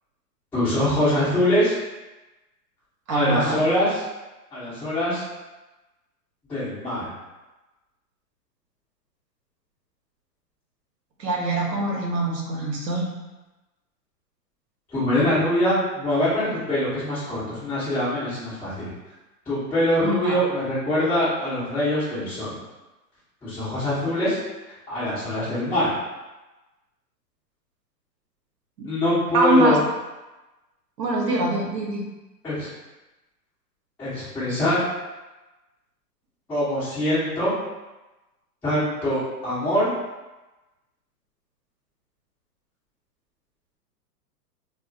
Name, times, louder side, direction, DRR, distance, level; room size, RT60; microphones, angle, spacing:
voice 1, 0.5-1.7 3.1-4.0 4.5-5.2 6.5-7.1 14.9-18.9 19.5-22.6 23.4-24.4 24.9-25.9 28.8-29.8 32.4-32.7 34.0-34.8 36.5-37.5 38.6-39.9, left 1 dB, 5° left, -13 dB, 0.5 m, -23 dB
voice 2, 3.1-3.6 11.2-13.1 20.0-20.4 28.8-28.9 29.3-29.8 31.0-32.1, right 1 dB, 85° right, 0 dB, 1.0 m, -23 dB
2.4 x 2.3 x 3.7 m, 1.1 s
hypercardioid pair, 145°, 49 cm